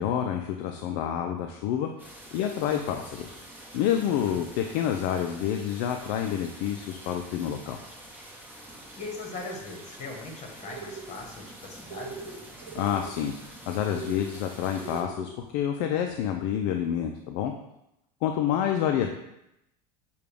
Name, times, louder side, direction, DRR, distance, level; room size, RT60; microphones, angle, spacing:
voice 1, 0.0-1.9 2.3-3.4 3.7-7.8 12.7-17.5 18.2-19.1, left 9 dB, 60° left, 4 dB, 0.4 m, -28 dB
sound 1, 2.0-15.0, right 1 dB, 10° right, 1.0 m, -47 dB
voice 2, 4.0-4.4 9.0-12.2, left 3 dB, 35° left, 1 dB, 1.3 m, -40 dB
sound 2, 10.6-11.1 11.9-12.4 12.6-13.1 13.8-14.3 14.8-15.3, right 5 dB, 85° right, 1.0 m, -40 dB
6.6 x 2.3 x 3.4 m, 0.85 s
hypercardioid pair, 100°, 21 cm